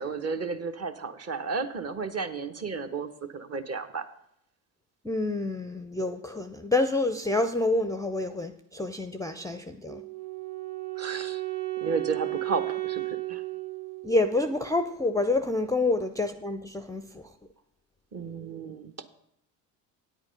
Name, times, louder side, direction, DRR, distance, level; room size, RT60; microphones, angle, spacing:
voice 1, 0.0-4.1 11.0-11.4 11.8-13.4 18.1-19.0, right 5 dB, 35° right, 7 dB, 1.1 m, -33 dB
voice 2, 5.0-10.0 14.0-17.3, left 2 dB, 10° left, 9 dB, 0.5 m, -28 dB
Wind instrument woodwind instrument, 9.8-14.9, right 19 dB, 85° right, 1.1 m, -34 dB
9.2 x 8.1 x 5.2 m, 0.76 s
hypercardioid pair, 65°, 45 cm